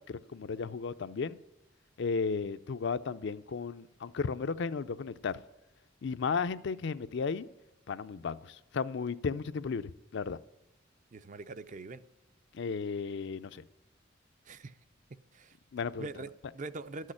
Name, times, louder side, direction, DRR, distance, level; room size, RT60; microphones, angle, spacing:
voice 1, 0.1-1.4 2.0-5.4 6.0-7.4 7.9-10.4 12.5-13.6 15.7-16.2, left 5 dB, 65° left, 0.5 m, -34 dB
voice 2, 11.1-12.0 14.5-14.7 15.3-15.5 16.0-17.1, right 3 dB, 40° right, 0.5 m, -43 dB
13.0 x 6.4 x 9.9 m
head